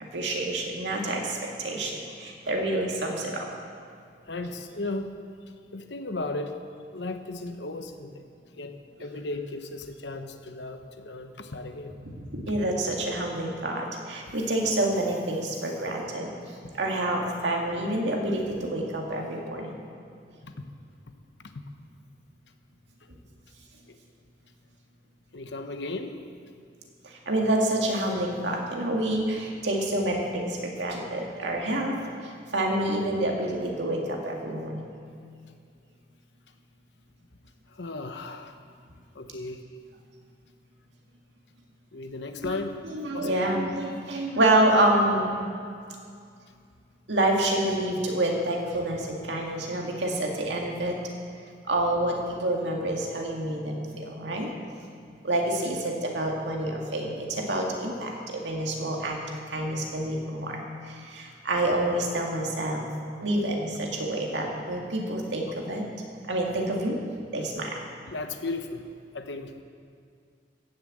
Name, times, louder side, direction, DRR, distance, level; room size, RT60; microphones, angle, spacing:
voice 1, 0.1-3.5 12.3-19.7 27.0-32.0 32.2-34.9 42.4-42.6 42.9-45.3 47.1-51.0 51.7-54.5 55.2-59.2 59.5-62.9 63.2-65.9 66.3-67.0 67.3-67.8, right 1 dB, 75° right, 0 dB, 2.1 m, -28 dB
voice 2, 4.2-5.2 5.7-6.6 6.9-8.2 8.5-11.9 14.3-14.4 20.4-20.5 21.1-21.6 23.9-24.0 25.3-26.2 37.7-38.6 39.1-39.6 41.9-42.8 43.1-43.5 55.6-55.7 68.1-68.8 69.1-69.6, left 2 dB, 70° left, 7 dB, 1.0 m, -36 dB
15.5 x 6.7 x 7.8 m, 2.3 s
head